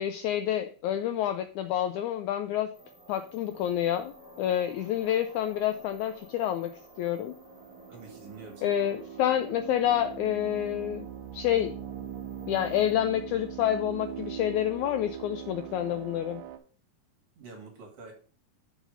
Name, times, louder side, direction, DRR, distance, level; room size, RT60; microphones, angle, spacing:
voice 1, 0.0-2.7 3.1-4.1 4.4-6.7 7.0-7.3 8.6-11.1 11.3-11.7 12.5-16.4, left 11 dB, 85° left, 8 dB, 1.7 m, -28 dB
sound 1, 2.7-12.9, equal, 10° right, 2.5 m, -52 dB
sound 2, 6.5-16.6, right 10 dB, 75° right, 2.4 m, -42 dB
voice 2, 7.9-8.8 17.4-18.1, right 4 dB, 50° right, 2 dB, 2.3 m, -46 dB
6.2 x 5.8 x 5.0 m, 0.41 s
omnidirectional pair, 3.9 m